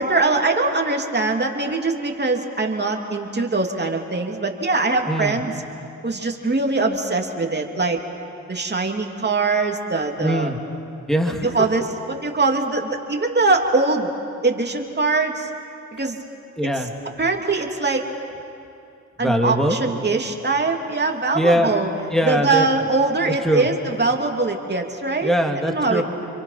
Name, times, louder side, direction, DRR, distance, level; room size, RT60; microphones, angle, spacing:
voice 1, 0.0-5.5 6.0-8.0 8.5-10.5 11.5-14.1 14.4-15.5 16.0-16.2 17.2-18.0 19.2-21.9 22.2-25.3 25.6-26.0, right 3 dB, 30° right, 2 dB, 2.9 m, -22 dB
voice 2, 5.1-5.4 10.2-10.6 11.1-11.7 16.6-16.9 19.2-19.8 21.3-21.7 22.1-22.7 23.3-23.7 25.2-26.0, equal, ahead, 3 dB, 2.9 m, -21 dB
30.0 x 23.5 x 5.9 m, 2.6 s
supercardioid pair, 55°, 34 cm